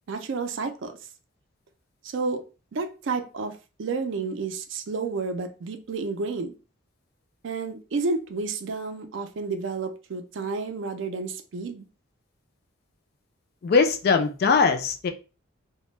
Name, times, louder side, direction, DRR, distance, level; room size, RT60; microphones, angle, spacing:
voice 1, 0.1-1.0 2.0-2.4 2.7-6.5 7.4-11.8, right 4 dB, 60° right, 7 dB, 0.4 m, -31 dB
voice 2, 13.6-15.1, left 5 dB, 45° left, 6 dB, 0.3 m, -21 dB
2.1 x 2.0 x 3.0 m, 0.32 s
head